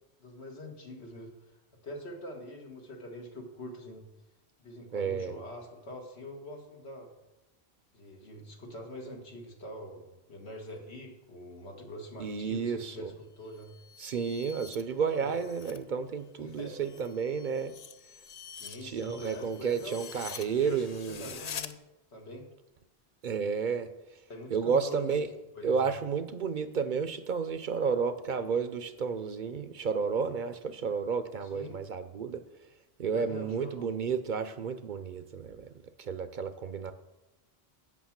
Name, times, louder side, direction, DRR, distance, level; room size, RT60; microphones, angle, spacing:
voice 1, 0.2-4.1 4.6-7.1 7.9-13.7 14.8-15.3 16.4-17.0 18.5-20.0 20.5-21.7 22.1-22.5 24.3-25.2 25.5-25.8 31.4-31.8 33.1-33.9, left 1 dB, 80° left, 1 dB, 2.0 m, -44 dB
voice 2, 4.9-5.3 12.2-13.1 14.0-17.7 18.8-21.3 23.2-23.9 24.5-25.3 25.6-32.4 33.0-35.7 36.0-36.9, right 6 dB, 55° right, 11 dB, 0.7 m, -31 dB
sound 1, 13.4-15.8 16.2-21.7, left 7 dB, 50° left, 0.5 m, -46 dB
8.5 x 6.0 x 7.3 m, 0.98 s
omnidirectional pair, 1.1 m